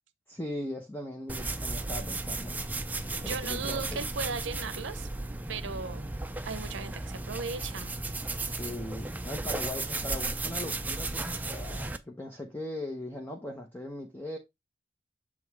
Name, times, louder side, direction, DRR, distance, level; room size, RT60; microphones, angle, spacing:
voice 1, 0.3-2.7 3.2-4.1 8.5-14.4, left 1 dB, 10° left, 0.8 m, -39 dB
sound 1, 1.3-12.0, right 2 dB, 10° right, 0.4 m, -35 dB
voice 2, 3.2-5.1 5.5-6.1 6.4-8.0, right 4 dB, 75° right, 0.6 m, -37 dB
7.8 x 3.1 x 4.7 m
head